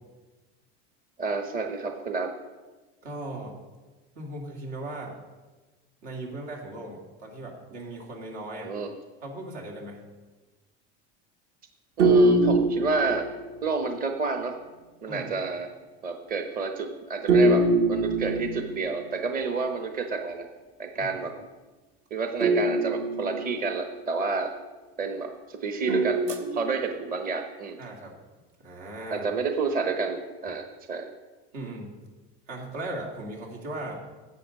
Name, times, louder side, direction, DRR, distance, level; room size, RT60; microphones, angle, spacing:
voice 1, 1.2-2.3 8.6-8.9 12.0-13.3 13.6-14.6 15.0-15.7 16.0-20.4 20.8-21.3 22.1-24.5 25.0-27.8 29.1-31.1, right 4 dB, 25° right, 6 dB, 0.9 m, -30 dB
voice 2, 3.0-3.6 4.1-5.2 6.0-8.7 9.2-10.0 15.1-15.3 21.0-21.2 27.8-28.1 28.6-29.3 31.5-32.0 32.5-34.0, right 2 dB, 75° right, -1 dB, 2.8 m, -38 dB
sound 1, 12.0-13.7 17.3-19.1 22.4-23.9 25.9-27.1, right 2 dB, 55° right, 1.4 m, -23 dB
9.9 x 7.5 x 5.3 m, 1.2 s
supercardioid pair, 110°, 32 cm